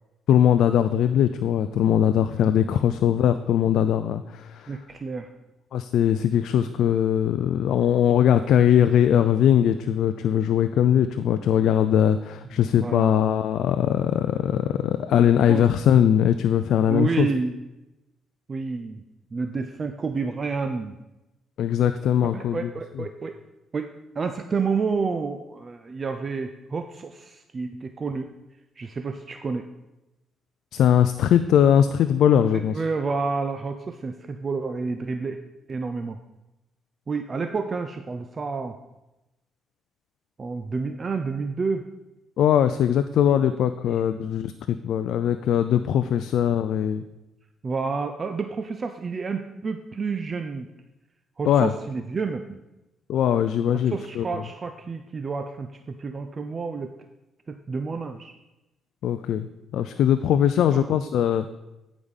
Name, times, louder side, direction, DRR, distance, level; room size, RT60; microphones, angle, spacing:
voice 1, 0.3-4.8 5.7-17.3 21.6-22.7 23.0-23.1 30.7-32.8 42.4-47.0 51.5-51.7 53.1-54.3 59.0-59.5 59.7-61.4, left 9 dB, 75° left, 9 dB, 0.4 m, -21 dB
voice 2, 4.7-5.3 12.8-13.1 15.5-15.7 16.9-17.6 18.5-19.0 19.3-21.0 22.3-23.4 23.7-23.9 24.2-28.3 28.8-29.7 32.5-35.4 35.7-36.2 37.1-38.8 40.4-41.9 44.0-44.1 47.6-50.7 51.4-52.6 53.7-56.9 57.5-58.3 60.7-60.9, right 4 dB, 35° right, 7 dB, 0.5 m, -29 dB
9.8 x 5.0 x 5.4 m, 0.97 s
cardioid pair, 90°, 0 cm